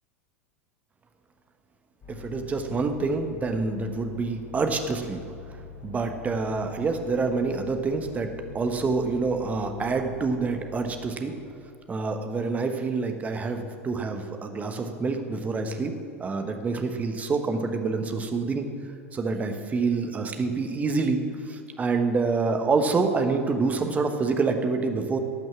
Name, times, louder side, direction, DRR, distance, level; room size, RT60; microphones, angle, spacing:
sound 1, 2.0-11.1, left 5 dB, 35° left, 3.6 m, -45 dB
voice 1, 2.1-5.2 5.8-11.4 11.9-18.7 19.1-25.2, right 4 dB, 20° right, 6 dB, 1.2 m, -27 dB
18.0 x 6.1 x 6.0 m, 2.5 s
figure-of-eight pair, 85°, 8 cm